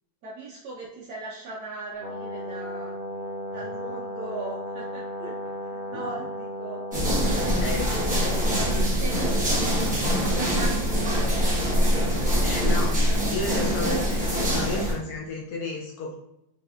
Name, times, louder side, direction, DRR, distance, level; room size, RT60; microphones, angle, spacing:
voice 1, 0.2-3.0 3.5-6.8 8.1-12.4 12.9-13.6 14.4-14.6, right 2 dB, 65° right, -6 dB, 1.1 m, -39 dB
Brass instrument, 2.0-9.0, equal, 85° right, 0.5 m, -35 dB
sound 1, 6.9-14.9, equal, 10° right, 0.4 m, -24 dB
voice 2, 7.6-8.2 12.4-12.9 13.3-16.1, left 3 dB, 75° left, -2 dB, 0.9 m, -32 dB
4.1 x 3.4 x 2.4 m, 0.86 s
omnidirectional pair, 2.2 m